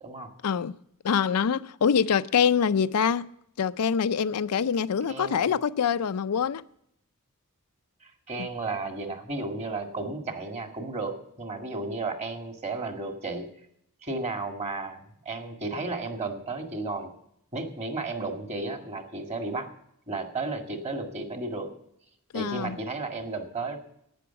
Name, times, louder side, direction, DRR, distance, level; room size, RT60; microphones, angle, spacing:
voice 1, 0.4-0.8 1.0-3.3 3.6-6.6 8.4-8.5 22.3-22.8, left 7 dB, 85° left, 0.5 m, -25 dB
voice 2, 5.1-5.4 8.0-13.5 14.0-17.1 17.5-19.7 20.1-21.7 22.3-23.8, right 3 dB, 30° right, 1.9 m, -33 dB
11.5 x 9.4 x 6.9 m
head